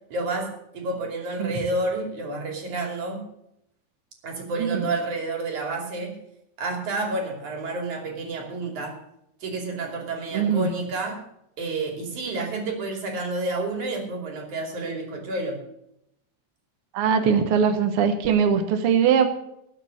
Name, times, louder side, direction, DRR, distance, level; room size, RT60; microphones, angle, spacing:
voice 1, 0.1-3.3 4.2-6.2 6.6-9.0 9.4-11.2 11.6-15.6, right 2 dB, 80° right, 2 dB, 4.3 m, -30 dB
voice 2, 10.3-10.7 16.9-19.3, right 7 dB, 60° right, 7 dB, 1.8 m, -21 dB
19.5 x 7.1 x 6.4 m, 0.79 s
omnidirectional pair, 3.4 m